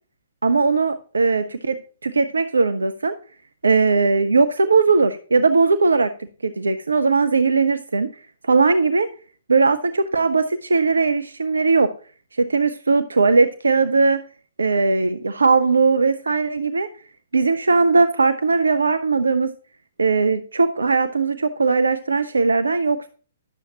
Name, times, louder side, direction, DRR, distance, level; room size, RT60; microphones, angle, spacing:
voice 1, 0.4-3.1 3.6-6.1 6.4-8.1 8.5-9.1 9.5-11.9 12.4-14.2 14.6-16.9 17.3-19.5 20.0-23.1, right 4 dB, 75° right, 10 dB, 0.6 m, -19 dB
11.0 x 7.0 x 2.8 m, 0.39 s
figure-of-eight pair, 120°, 0 cm